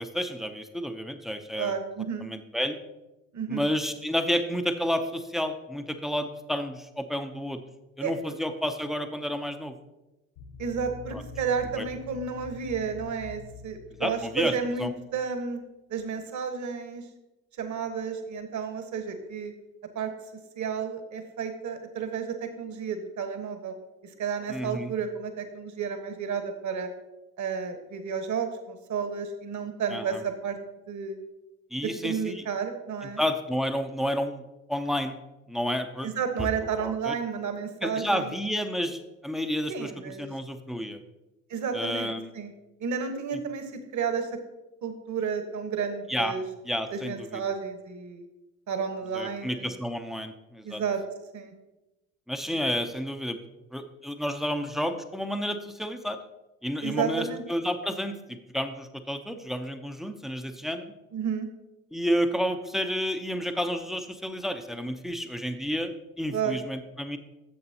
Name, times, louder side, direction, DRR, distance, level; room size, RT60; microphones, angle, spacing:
voice 1, 0.0-1.7 2.2-2.8 3.5-7.6 8.0-9.7 11.1-11.2 11.8-11.9 14.0-14.5 14.8-14.9 24.5-24.9 29.9-30.2 31.7-32.4 33.2-34.4 34.7-35.2 35.5-36.1 36.4-36.5 36.8-37.1 37.8-41.0 41.7-42.3 46.1-46.3 46.6-47.4 49.1-50.8 52.3-53.4 53.7-56.2 56.6-60.9 61.9-67.2, equal, ahead, 8 dB, 0.7 m, -30 dB
voice 2, 1.6-2.3 3.3-3.7 8.0-8.1 10.6-15.6 15.9-17.0 17.6-19.5 19.9-20.1 20.6-23.7 24.0-26.9 27.4-30.6 30.9-31.2 31.8-33.2 36.0-38.3 39.7-40.3 41.5-42.5 42.8-44.4 44.8-46.4 46.9-48.2 48.7-49.8 50.6-51.0 51.3-51.5 52.5-52.7 56.8-57.4 61.1-61.5 66.3-66.6, right 6 dB, 40° right, 7 dB, 1.4 m, -32 dB
sound 1, 10.4-15.0, left 3 dB, 60° left, 1.2 m, -45 dB
11.0 x 7.6 x 2.9 m, 1.0 s
hypercardioid pair, 65°, 44 cm